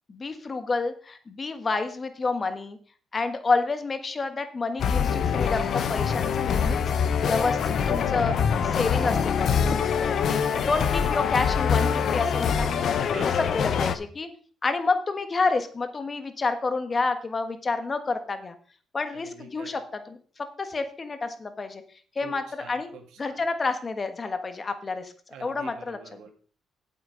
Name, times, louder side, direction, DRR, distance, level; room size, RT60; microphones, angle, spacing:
voice 1, 0.1-2.8 3.1-6.8 7.3-12.8 13.5-14.3 14.6-18.5 18.9-19.8 20.1-20.2 20.6-21.8 22.1-22.9 23.2-25.1 25.4-26.0, left 3 dB, 35° left, 8 dB, 1.4 m, -29 dB
sound 1, 4.8-14.0, left 7 dB, 65° left, 0.9 m, -24 dB
voice 2, 13.1-13.5 19.1-19.8 22.2-23.4 25.3-26.3, right 6 dB, 85° right, 4 dB, 2.2 m, -45 dB
8.2 x 8.0 x 4.9 m, 0.43 s
cardioid pair, 90°, 0 cm